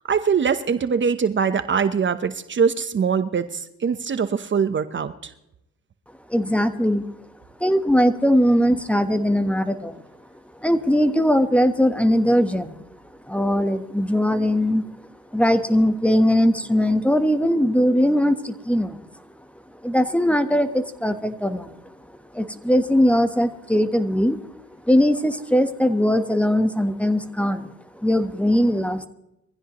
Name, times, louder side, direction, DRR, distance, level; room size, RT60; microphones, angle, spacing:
voice 1, 0.1-5.3, right 6 dB, 40° right, 11 dB, 0.9 m, -22 dB
voice 2, 6.3-7.1 7.6-10.0 10.6-12.8 13.3-14.8 15.3-19.0 19.8-21.8 22.3-24.4 24.8-29.1, equal, 5° left, 9 dB, 1.2 m, -20 dB
22.5 x 15.5 x 3.1 m, 0.86 s
cardioid pair, 90°, 30 cm